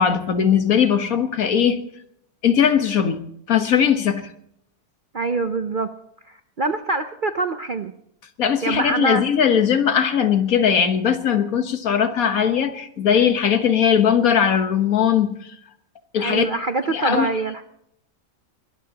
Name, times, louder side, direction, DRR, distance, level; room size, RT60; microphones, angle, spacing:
voice 1, 0.0-1.8 2.4-3.2 3.5-4.3 8.4-15.6 16.1-16.5 16.9-17.3, left 8 dB, 65° left, 1.6 m, -19 dB
voice 2, 5.1-5.9 6.2-7.9 8.6-9.3 16.2-17.6, right 3 dB, 50° right, 0.6 m, -24 dB
22.0 x 19.5 x 2.9 m
omnidirectional pair, 1.6 m